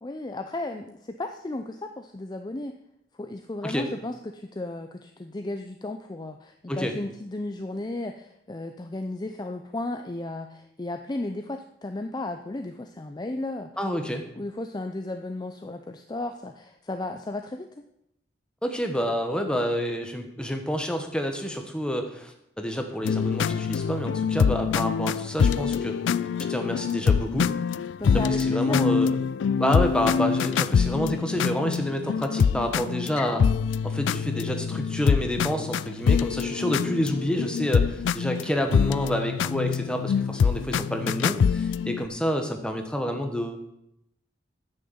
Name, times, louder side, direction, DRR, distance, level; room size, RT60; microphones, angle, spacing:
voice 1, 0.0-2.7 3.2-13.7 14.4-17.7 28.0-28.8, left 2 dB, 25° left, 6 dB, 0.5 m, -34 dB
voice 2, 13.8-14.2 18.6-26.0 26.5-27.5 28.4-29.1 29.5-33.5 33.8-43.6, equal, 5° left, 4 dB, 1.2 m, -28 dB
sound 1, 23.0-42.1, left 6 dB, 85° left, 0.3 m, -25 dB
9.5 x 6.5 x 7.9 m, 0.81 s
head